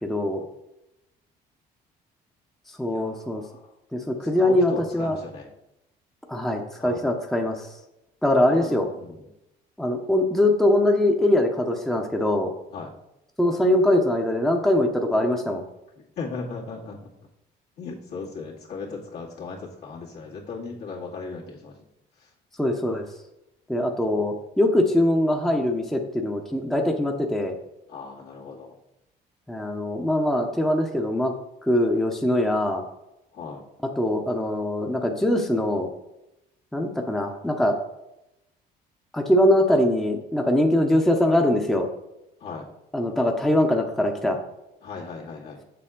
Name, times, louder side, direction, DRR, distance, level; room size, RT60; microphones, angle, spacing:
voice 1, 0.0-0.4 2.8-3.4 3.9-5.2 6.3-7.7 8.2-8.9 9.8-12.5 13.4-15.6 22.6-23.1 23.7-27.6 29.5-31.3 31.7-32.8 34.0-35.9 36.7-37.8 39.1-41.9 42.9-44.4, left 1 dB, ahead, 2 dB, 0.8 m, -22 dB
voice 2, 2.9-3.7 4.4-5.5 6.8-7.1 8.5-9.3 12.7-12.9 16.0-17.1 17.8-21.8 22.2-22.3 27.9-28.7 33.3-33.6 42.4-42.7 44.8-45.6, left 4 dB, 70° left, -4 dB, 2.1 m, -37 dB
6.9 x 6.9 x 3.7 m, 0.89 s
cardioid pair, 110°, 17 cm